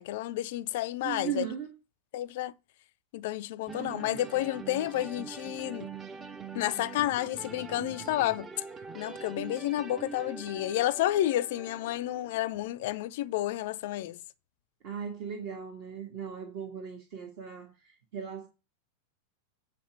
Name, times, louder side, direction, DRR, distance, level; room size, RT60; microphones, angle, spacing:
voice 1, 0.0-1.5 2.1-2.5 3.1-5.9 6.5-8.5 8.9-14.2, left 14 dB, 50° left, 0.5 m, -31 dB
voice 2, 1.0-1.7 14.8-18.5, right 7 dB, 45° right, 1.5 m, -37 dB
sound 1, 3.7-12.7, right 5 dB, 20° right, 0.7 m, -43 dB
8.6 x 3.8 x 6.9 m
figure-of-eight pair, 90°, 0 cm